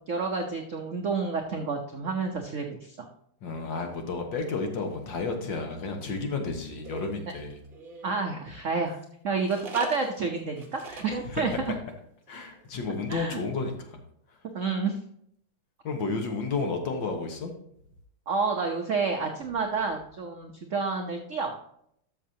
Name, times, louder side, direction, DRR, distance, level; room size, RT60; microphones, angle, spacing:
voice 1, 0.1-3.1 8.0-9.0 9.2-11.7 13.1-13.4 14.5-15.0 18.3-21.5, right 4 dB, 75° right, 4 dB, 0.7 m, -29 dB
voice 2, 3.4-7.6 11.2-11.6 12.3-14.0 15.8-17.5, left 4 dB, 60° left, 4 dB, 1.9 m, -32 dB
sound 1, 6.8-8.2 9.4-11.2 11.5-11.7 11.9-12.0 12.3-12.6, right 2 dB, 30° right, 1.0 m, -41 dB
12.5 x 6.5 x 2.8 m, 0.71 s
omnidirectional pair, 2.4 m